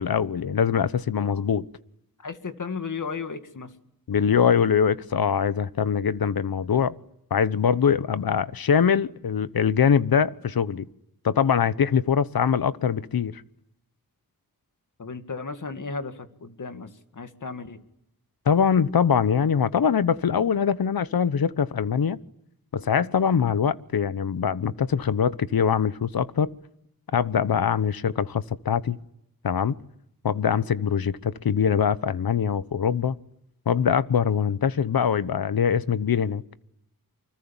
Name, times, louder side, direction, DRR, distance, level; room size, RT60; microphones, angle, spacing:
voice 1, 0.0-1.7 4.1-6.9 7.3-10.8 11.2-13.4 18.5-22.2 22.7-26.5 27.1-29.0 29.4-29.8 30.2-33.2 33.7-36.4, left 7 dB, 80° left, 1.1 m, -23 dB
voice 2, 2.2-3.7 15.0-17.8, left 4 dB, 55° left, 2.3 m, -35 dB
28.5 x 25.0 x 7.3 m
wide cardioid pair, 125°, 36 cm